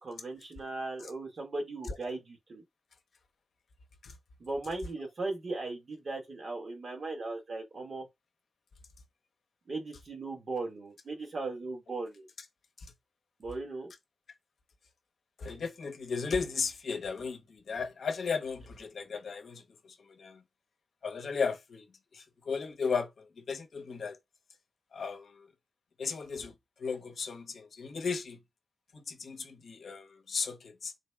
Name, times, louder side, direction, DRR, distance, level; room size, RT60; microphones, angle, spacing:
voice 1, 0.0-2.6 4.4-8.1 9.7-12.3 13.4-13.9, right 3 dB, 50° right, 1.3 m, -38 dB
voice 2, 15.4-20.4 21.0-21.9 22.1-24.2 24.9-25.5 26.0-28.4 28.9-30.9, left 5 dB, 65° left, 0.7 m, -35 dB
3.9 x 2.1 x 3.2 m
wide cardioid pair, 115°, 0 cm